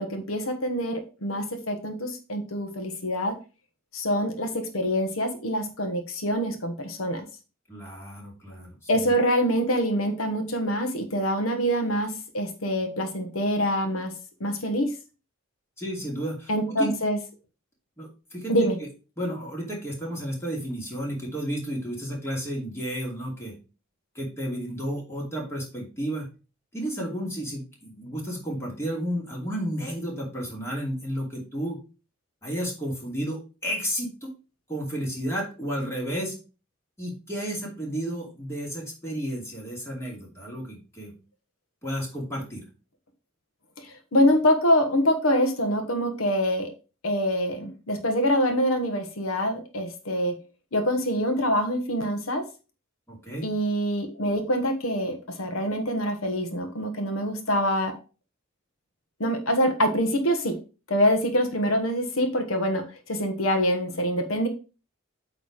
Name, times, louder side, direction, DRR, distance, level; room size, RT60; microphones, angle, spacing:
voice 1, 0.0-3.3 3.9-7.2 8.9-14.1 14.4-14.9 16.5-17.2 18.5-18.8 43.8-46.7 47.0-50.4 50.7-52.4 53.4-57.9 59.2-60.6 60.9-64.5, equal, 80° left, 6 dB, 1.2 m, -25 dB
voice 2, 7.7-9.1 15.8-16.9 18.0-18.5 19.2-23.5 24.1-26.3 26.7-31.8 32.4-34.3 34.7-36.4 37.0-41.1 41.8-42.6 53.1-53.5, equal, 15° left, -2 dB, 2.5 m, -32 dB
8.5 x 3.3 x 4.8 m, 0.34 s
head